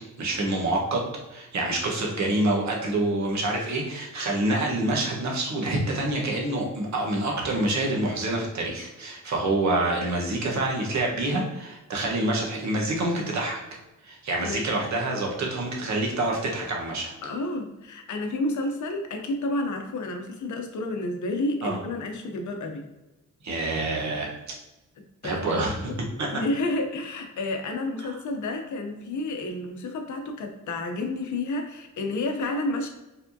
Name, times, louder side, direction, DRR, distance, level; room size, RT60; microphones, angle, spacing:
voice 1, 0.2-13.6 14.0-17.1 21.6-21.8 23.4-24.3 25.2-25.7 26.2-26.3, right 2 dB, 60° right, -1 dB, 1.1 m, -27 dB
voice 2, 17.2-22.8 25.2-26.0 26.3-32.9, left 2 dB, 65° left, 4 dB, 0.7 m, -30 dB
4.7 x 3.5 x 2.7 m, 1.0 s
wide cardioid pair, 165°, 31 cm